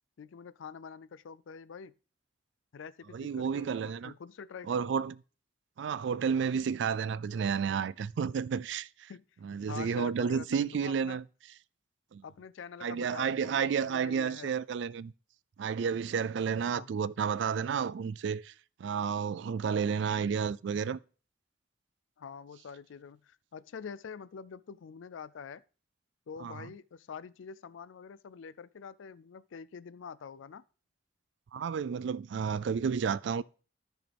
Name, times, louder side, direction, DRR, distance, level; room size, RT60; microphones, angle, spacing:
voice 1, 0.2-1.9 2.7-5.0 9.1-9.2 9.7-11.2 12.2-14.6 16.7-16.9 22.2-25.6 26.3-30.6, left 6 dB, 75° left, 0.4 m, -46 dB
voice 2, 3.1-4.1 4.7-5.1 5.8-9.1 9.4-11.2 12.1-12.2 12.8-15.1 15.6-18.5 18.8-21.0 26.4-26.7 31.5-33.4, right 6 dB, 65° right, 0.3 m, -31 dB
14.0 x 6.2 x 3.4 m
head